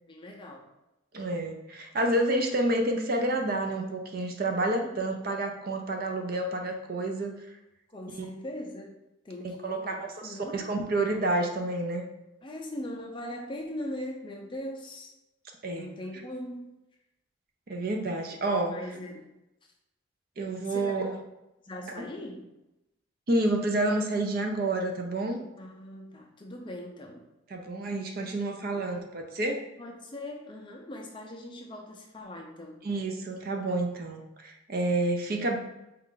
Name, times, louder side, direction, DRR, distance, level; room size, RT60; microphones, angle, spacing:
voice 1, 0.1-0.7 4.8-4.9 7.9-9.0 9.2-9.9 10.2-10.7 12.4-15.1 15.8-16.8 18.6-19.3 20.6-21.0 21.6-22.5 25.6-27.3 28.7-28.8 29.8-32.9, left 1 dB, 25° left, 1 dB, 0.5 m, -40 dB
voice 2, 1.1-7.6 8.1-8.3 9.4-12.0 15.6-15.9 17.7-18.7 20.4-21.2 22.0-22.1 23.3-25.4 27.5-29.6 32.8-35.6, right 2 dB, 45° right, 3 dB, 0.5 m, -29 dB
4.4 x 2.5 x 3.6 m, 0.93 s
head